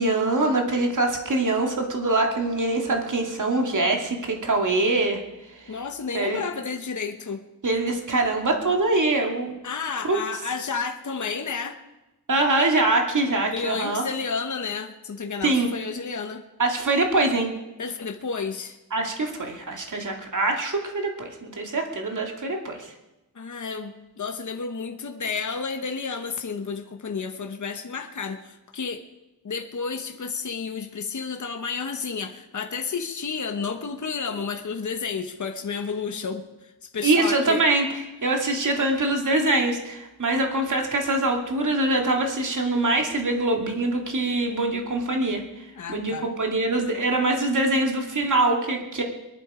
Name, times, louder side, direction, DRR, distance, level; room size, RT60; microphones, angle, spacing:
voice 1, 0.0-5.2 5.7-5.8 6.1-6.4 7.6-9.6 10.1-10.2 12.3-14.0 15.4-15.7 16.6-17.5 18.9-22.9 37.0-37.9 38.2-45.4 45.9-49.0, right 2 dB, 55° right, 2 dB, 2.5 m, -23 dB
voice 2, 5.7-7.4 9.6-11.8 13.5-16.4 17.8-18.8 23.3-29.0 29.4-37.6 45.8-46.3, left 5 dB, 50° left, 6 dB, 1.1 m, -31 dB
22.0 x 11.5 x 5.0 m, 0.99 s
wide cardioid pair, 115°, 37 cm